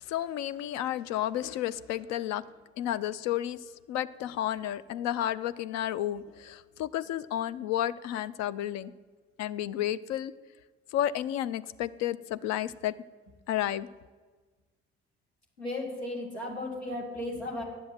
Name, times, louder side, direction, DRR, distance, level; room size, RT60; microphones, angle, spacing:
voice 1, 0.1-2.4 2.8-3.6 3.9-8.9 9.4-10.3 10.9-12.9 13.5-13.9, left 12 dB, 55° left, 15 dB, 0.5 m, -31 dB
voice 2, 15.6-17.6, left 1 dB, 85° left, -2 dB, 1.8 m, -35 dB
10.0 x 7.8 x 9.4 m, 1.4 s
figure-of-eight pair, 45°, 32 cm